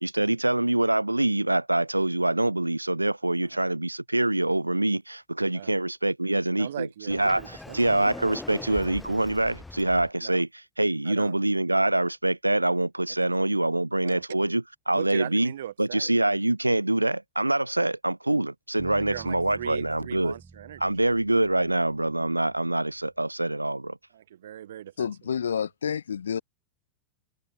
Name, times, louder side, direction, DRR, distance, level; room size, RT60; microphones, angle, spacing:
voice 1, 0.0-15.5 15.8-20.4 20.8-24.0, right 2 dB, 85° right, 0.5 m, -25 dB
voice 2, 6.6-8.0 10.2-10.4 11.1-11.3 13.2-13.3 14.0-14.3 14.9-16.2 18.9-21.1 24.1-25.1, right 11 dB, 60° right, 1.1 m, -39 dB
Sliding door, 7.1-10.1, left 2 dB, 10° left, 0.6 m, -41 dB
sound 1, 18.8-22.9, right 4 dB, 15° right, 5.4 m, -50 dB
voice 3, 25.0-26.4, left 7 dB, 70° left, 0.4 m, -29 dB
figure-of-eight pair, 90°, 0 cm